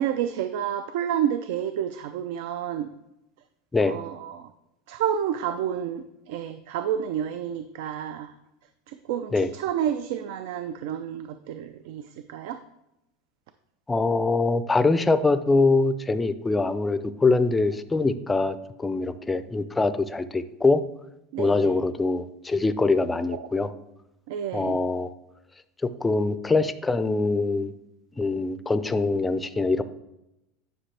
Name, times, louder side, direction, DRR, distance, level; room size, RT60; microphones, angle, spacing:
voice 1, 0.0-2.9 3.8-4.5 4.9-8.3 8.9-12.6 21.3-21.7 23.3-23.4 24.3-24.8, right 9 dB, 70° right, 11 dB, 0.4 m, -30 dB
voice 2, 13.9-20.8 21.4-23.7 24.5-25.1 25.8-27.7 28.2-29.8, left 3 dB, 10° left, 12 dB, 0.4 m, -23 dB
10.0 x 5.9 x 3.3 m, 0.88 s
supercardioid pair, 145°, 0 cm